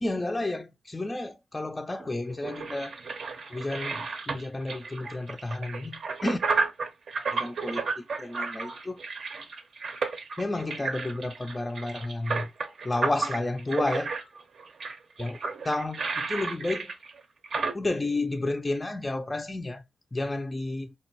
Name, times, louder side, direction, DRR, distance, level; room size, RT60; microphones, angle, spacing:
voice 1, 0.0-3.0 3.5-6.4 7.3-9.0 10.4-12.5 12.8-14.2 15.2-15.4 15.6-16.9 17.7-19.8 20.1-20.9, left 2 dB, 20° left, 0.3 m, -31 dB
sound 1, 2.0-17.7, right 4 dB, 70° right, 0.6 m, -32 dB
3.5 x 2.1 x 2.7 m
cardioid pair, 65°, 0 cm